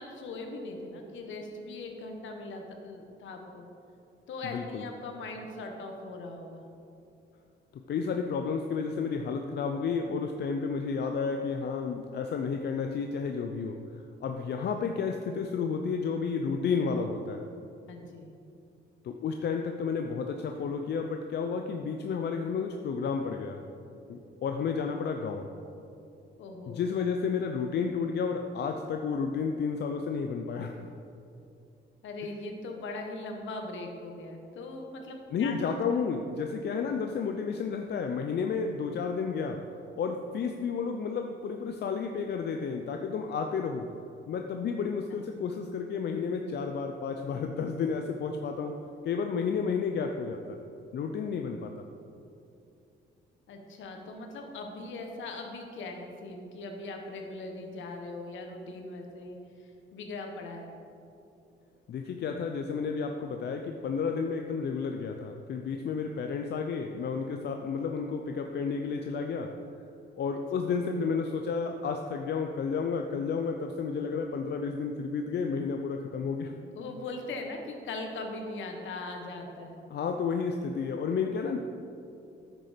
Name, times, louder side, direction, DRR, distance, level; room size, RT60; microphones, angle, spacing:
voice 1, 0.0-3.7 4.3-6.6 17.9-18.3 26.4-26.8 32.0-35.5 45.1-45.2 53.5-60.8 76.7-79.8, left 2 dB, 75° left, 3 dB, 1.4 m, -40 dB
voice 2, 4.4-4.8 7.7-17.4 19.0-23.6 24.1-25.5 26.7-30.8 35.3-39.6 40.0-43.9 44.3-48.8 49.0-50.6 50.9-51.9 61.9-69.5 70.2-76.5 79.9-81.6, left 5 dB, 60° left, 4 dB, 0.6 m, -31 dB
10.0 x 6.6 x 5.1 m, 2.7 s
cardioid pair, 90°, 20 cm